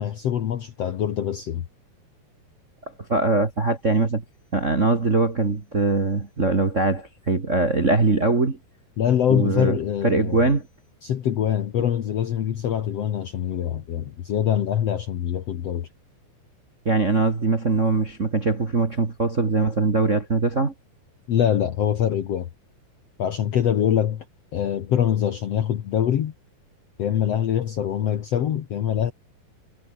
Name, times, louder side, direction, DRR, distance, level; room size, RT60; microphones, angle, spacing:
voice 1, 0.0-1.6 9.0-10.5 11.0-15.9 21.3-22.5 23.2-24.3 24.5-26.3 27.0-29.1, left 10 dB, 60° left, 1.8 m, -24 dB
voice 2, 3.1-4.2 4.5-8.6 9.3-9.8 10.0-10.7 16.8-20.7, right 3 dB, 30° right, 1.5 m, -22 dB
omnidirectional pair, 4.4 m